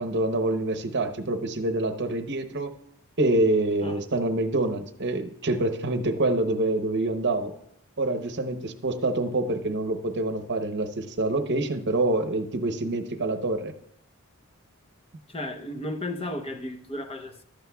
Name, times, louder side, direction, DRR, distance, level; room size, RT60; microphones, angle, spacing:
voice 1, 0.0-2.7 3.2-7.5 8.0-13.7, right 2 dB, 50° right, 7 dB, 0.8 m, -26 dB
voice 2, 15.3-17.4, left 1 dB, 25° left, 6 dB, 0.7 m, -34 dB
14.5 x 11.5 x 2.3 m, 0.70 s
head